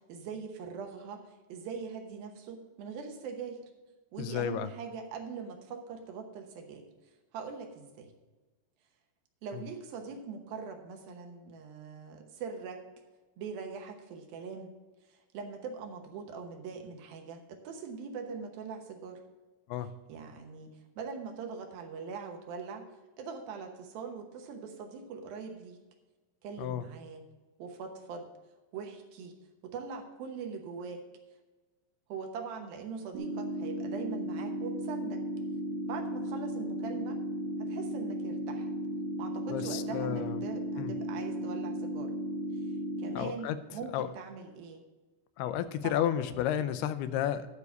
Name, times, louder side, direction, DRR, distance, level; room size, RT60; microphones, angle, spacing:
voice 1, 0.1-3.6 4.1-6.9 7.3-8.1 9.4-12.8 13.4-14.7 15.1-19.2 20.1-22.9 23.2-25.8 26.4-27.2 27.6-28.3 28.7-29.4 29.6-31.0 32.1-35.2 35.9-37.2 37.6-38.7 39.2-42.1 43.0-44.8 45.8-46.1, right 5 dB, 75° right, 4 dB, 2.8 m, -42 dB
voice 2, 4.2-4.7 9.5-9.6 19.7-19.9 26.6-26.8 39.5-40.4 40.8-41.0 43.2-43.6 43.9-44.1 45.4-47.5, left 10 dB, 85° left, 12 dB, 2.6 m, -32 dB
sound 1, 33.1-43.1, right 1 dB, 60° right, 1.4 m, -35 dB
12.0 x 4.8 x 6.9 m, 1.2 s
omnidirectional pair, 4.5 m